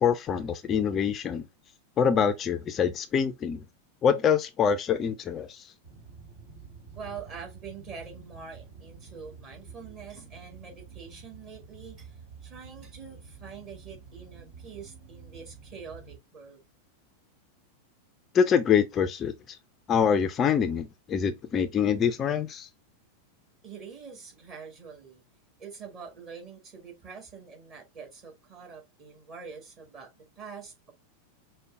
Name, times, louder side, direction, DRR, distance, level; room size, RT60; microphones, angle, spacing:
voice 1, 0.0-1.4 2.0-3.6 4.0-5.7 18.3-19.6 19.9-22.7, left 7 dB, 25° left, 0.4 m, -25 dB
sound 1, 5.8-16.2, right 5 dB, 65° right, 1.7 m, -49 dB
voice 2, 6.9-16.6 23.6-25.2 25.6-30.9, right 6 dB, 35° right, 1.5 m, -45 dB
5.1 x 2.1 x 3.4 m
figure-of-eight pair, 90°, 0 cm